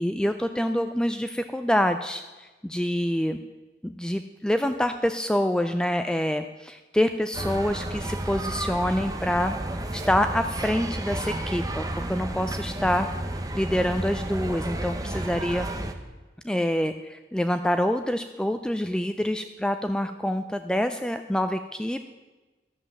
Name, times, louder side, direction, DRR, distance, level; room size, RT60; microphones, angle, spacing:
voice 1, 0.0-3.4 3.8-9.6 9.9-13.1 13.5-15.7 16.4-22.0, equal, 5° left, 8 dB, 0.3 m, -26 dB
sound 1, 7.3-15.9, right 1 dB, 20° right, 0.8 m, -32 dB
12.0 x 7.5 x 7.0 m, 1.2 s
head